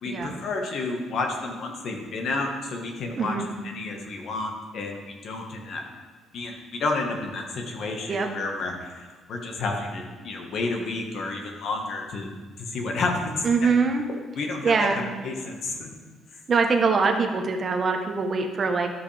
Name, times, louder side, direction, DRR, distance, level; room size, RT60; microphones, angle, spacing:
voice 1, 0.0-3.3 3.6-5.8 6.3-12.3 12.6-13.7 14.3-15.9, left 3 dB, 60° left, 2 dB, 1.5 m, -31 dB
voice 2, 13.4-14.0 14.6-15.0 16.5-18.9, right 4 dB, 35° right, 3 dB, 1.0 m, -23 dB
13.0 x 5.6 x 3.5 m, 1.4 s
cardioid pair, 115°, 0 cm